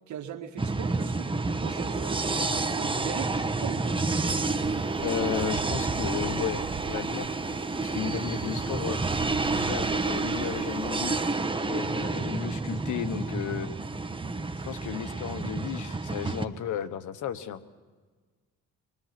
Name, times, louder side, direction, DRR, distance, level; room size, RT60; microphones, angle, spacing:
voice 1, 0.1-1.3 1.6-4.0 15.4-15.6, right 8 dB, 70° right, 5 dB, 2.0 m, -39 dB
sound 1, 0.6-16.4, right 3 dB, 15° right, 1.3 m, -29 dB
sound 2, 4.6-11.2, right 11 dB, 45° right, 0.6 m, -43 dB
voice 2, 5.0-6.6 6.9-7.3 7.9-9.0 9.5-11.2 11.7-13.7 14.6-17.6, left 9 dB, 75° left, 10 dB, 1.3 m, -34 dB
24.5 x 22.5 x 6.0 m, 1.4 s
cardioid pair, 90°, 30 cm